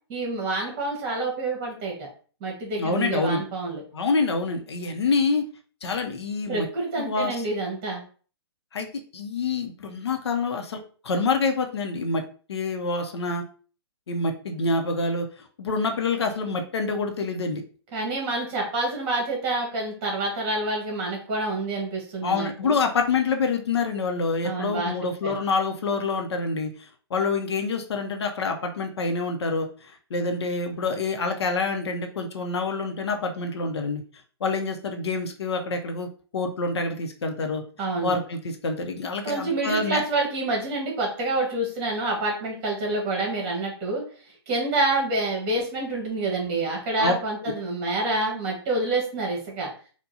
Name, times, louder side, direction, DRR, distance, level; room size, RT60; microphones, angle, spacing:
voice 1, 0.1-2.1 2.4-3.8 6.5-8.0 17.9-22.8 24.4-24.9 25.2-25.3 37.8-38.1 39.2-44.0 44.5-49.7, right 2 dB, 30° right, 0 dB, 1.5 m, -27 dB
voice 2, 2.8-3.4 3.9-5.5 5.8-6.7 7.0-7.4 8.7-8.9 9.1-10.8 11.0-12.2 12.5-13.4 14.1-17.6 22.2-34.0 34.4-37.6 38.0-40.0 47.0-47.1, left 4 dB, 70° left, 5 dB, 0.7 m, -27 dB
4.4 x 2.2 x 2.7 m, 0.40 s
hypercardioid pair, 140°, 14 cm